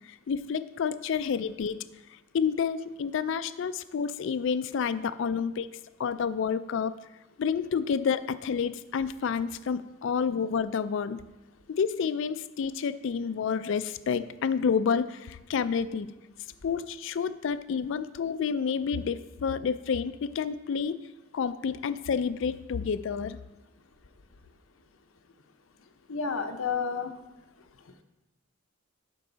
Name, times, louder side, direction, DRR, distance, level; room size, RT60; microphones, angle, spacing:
voice 1, 0.1-1.8 2.3-5.7 6.0-7.1 7.4-11.2 11.7-16.1 16.6-21.0 21.3-23.4, left 6 dB, 65° left, 13 dB, 0.4 m, -29 dB
voice 2, 26.1-27.1 27.8-28.0, left 5 dB, 90° left, 6 dB, 0.7 m, -31 dB
11.5 x 4.6 x 4.0 m, 1.1 s
head